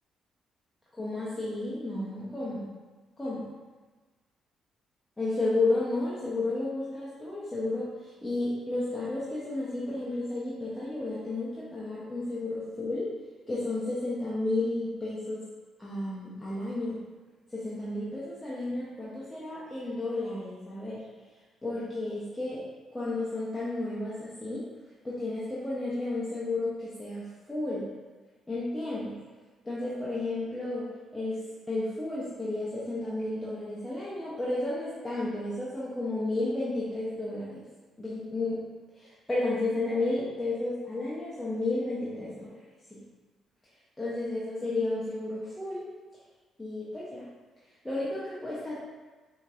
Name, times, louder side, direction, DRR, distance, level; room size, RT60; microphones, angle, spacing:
voice 1, 0.9-2.7 3.2-3.4 5.2-13.1 13.5-15.4 15.8-17.0 17.5-21.0 21.6-22.6 22.9-24.7 25.0-27.9 28.5-29.2 29.6-31.4 31.7-37.6 38.0-38.6 39.0-42.5 42.9-43.0 44.0-45.8 46.6-47.2 47.8-48.9, left 2 dB, 10° left, -9 dB, 0.8 m, -32 dB
5.1 x 2.8 x 2.5 m, 1.3 s
cardioid pair, 90°, 0 cm